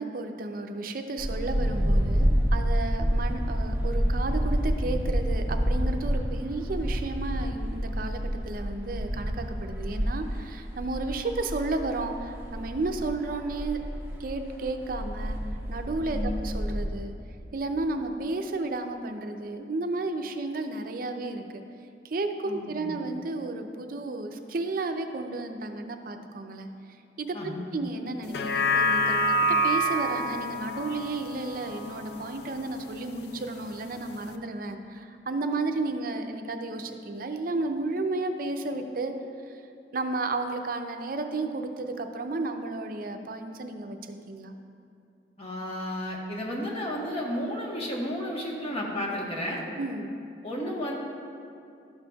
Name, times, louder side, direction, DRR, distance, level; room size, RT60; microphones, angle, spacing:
voice 1, 0.0-13.8 14.2-15.4 15.7-17.1 17.5-21.6 22.0-26.7 27.2-29.4 29.6-39.1 39.5-39.6 39.9-44.5 49.8-50.1, right 2 dB, 50° right, 6 dB, 0.5 m, -32 dB
sound 1, 1.2-16.9, equal, 15° right, 0.8 m, -28 dB
voice 2, 22.4-23.0 27.3-27.8 45.4-49.6 50.4-51.0, left 1 dB, 35° left, -3 dB, 1.2 m, -33 dB
sound 2, 28.2-32.8 33.2-33.3, equal, 65° left, 0.4 m, -27 dB
12.0 x 6.6 x 2.3 m, 2.6 s
head